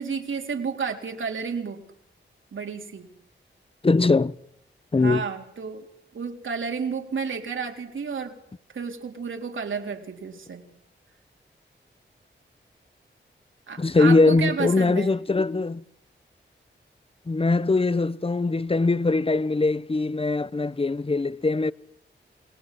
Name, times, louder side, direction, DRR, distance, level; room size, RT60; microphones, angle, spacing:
voice 1, 0.0-1.8 2.5-3.1 5.0-5.9 6.1-8.3 8.7-10.6 13.7-15.1, right 5 dB, 80° right, 4.1 m, -31 dB
voice 2, 3.8-4.3 4.9-5.2 13.8-15.8 17.3-21.7, left 3 dB, 30° left, 1.0 m, -21 dB
29.5 x 20.5 x 7.8 m
wide cardioid pair, 70°, 20 cm